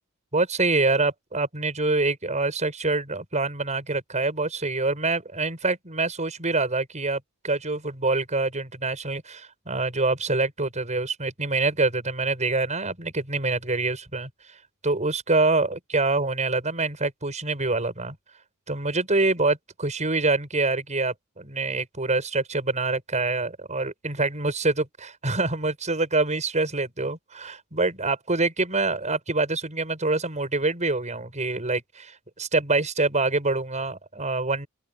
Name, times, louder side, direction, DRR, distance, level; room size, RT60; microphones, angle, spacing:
voice 1, 0.3-14.3 14.8-18.2 18.7-34.7, right 3 dB, 35° right, 7.2 m, -25 dB
open air
head